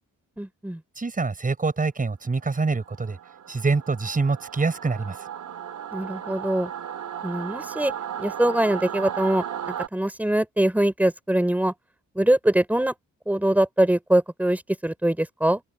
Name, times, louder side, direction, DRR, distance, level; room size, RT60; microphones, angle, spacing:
voice 1, 0.4-0.8 5.9-6.7 7.2-7.9 8.2-11.7 12.1-12.9 13.3-15.6, right 1 dB, 5° right, 4.1 m, -23 dB
voice 2, 1.0-3.2 3.5-5.2, right 4 dB, 25° right, 6.9 m, -25 dB
Singing / Musical instrument, 2.7-9.9, right 9 dB, 65° right, 3.1 m, -35 dB
wide cardioid pair, 165°, 33 cm